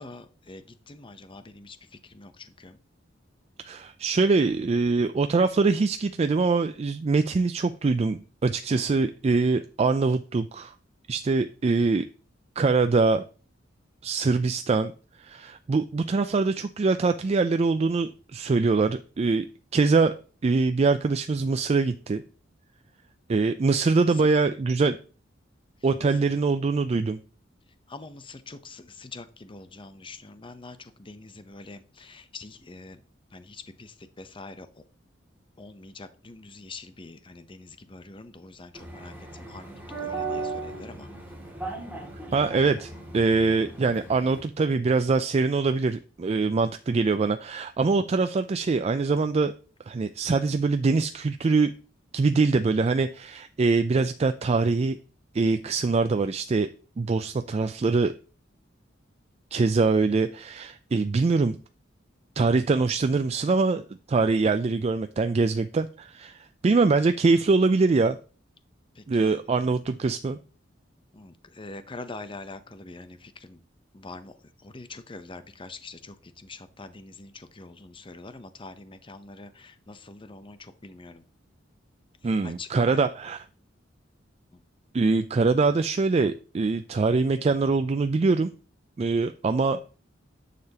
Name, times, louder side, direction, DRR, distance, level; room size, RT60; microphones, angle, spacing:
voice 1, 0.0-2.8 24.1-24.3 26.1-26.2 27.9-33.0 33.3-34.8 35.6-41.1 68.9-69.3 71.1-73.6 73.9-81.2 82.2-83.0 84.5-84.6, left 3 dB, 25° left, 11 dB, 0.7 m, -44 dB
voice 2, 3.6-10.7 11.1-12.1 12.6-13.2 14.0-14.9 15.2-19.5 19.7-20.1 20.4-22.2 23.3-25.0 25.8-27.2 42.3-49.5 49.9-51.7 52.1-55.0 55.3-56.7 57.0-58.1 59.5-61.6 62.4-68.2 69.1-70.4 82.2-83.4 84.9-88.5 89.0-89.8, right 4 dB, 35° right, 9 dB, 0.4 m, -23 dB
sound 1, 38.7-44.4, right 3 dB, 10° right, 2.4 m, -37 dB
9.7 x 6.7 x 2.9 m, 0.36 s
head